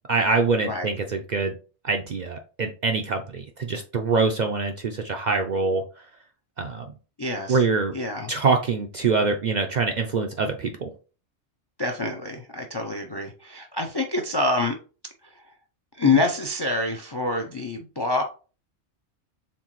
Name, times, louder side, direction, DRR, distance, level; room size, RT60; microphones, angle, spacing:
voice 1, 0.1-1.6 1.8-5.8 6.6-6.8 7.5-7.9 8.3-10.9, right 4 dB, 60° right, 4 dB, 0.5 m, -24 dB
voice 2, 7.2-7.6 7.9-8.3 11.8-14.7 16.0-18.2, left 3 dB, 45° left, 4 dB, 0.3 m, -26 dB
4.3 x 3.6 x 3.0 m, 0.36 s
omnidirectional pair, 1.2 m